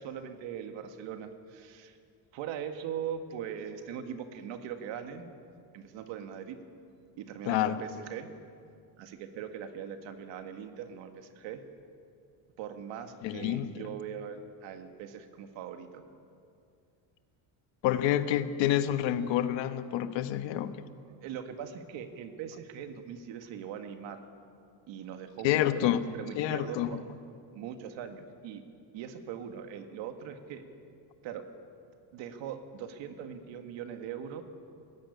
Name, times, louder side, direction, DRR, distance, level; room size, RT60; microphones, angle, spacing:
voice 1, 0.0-2.0 2.3-5.3 5.7-6.6 7.2-8.3 9.0-11.6 12.6-16.0 21.2-24.2 24.9-27.0 27.5-28.6 28.9-30.6 31.2-31.5 32.1-34.4, right 8 dB, 85° right, 7 dB, 1.9 m, -41 dB
voice 2, 7.5-7.8 13.2-13.7 17.8-20.7 25.4-26.0 26.3-27.0, left 12 dB, 80° left, 10 dB, 1.3 m, -28 dB
19.0 x 15.0 x 9.9 m, 2.4 s
cardioid pair, 150°, 43 cm